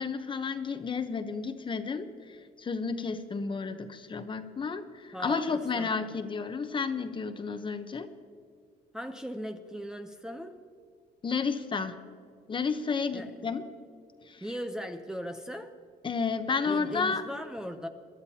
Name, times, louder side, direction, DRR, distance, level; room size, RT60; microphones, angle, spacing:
voice 1, 0.0-8.1 11.2-12.0 12.5-13.6 14.3-14.4 16.0-17.2, left 5 dB, 30° left, 9 dB, 0.9 m, -32 dB
voice 2, 5.1-6.1 8.9-10.5 13.1-13.3 14.4-15.7 16.7-17.9, equal, 5° right, 4 dB, 0.7 m, -38 dB
23.0 x 12.0 x 2.9 m, 2.2 s
cardioid pair, 110°, 17 cm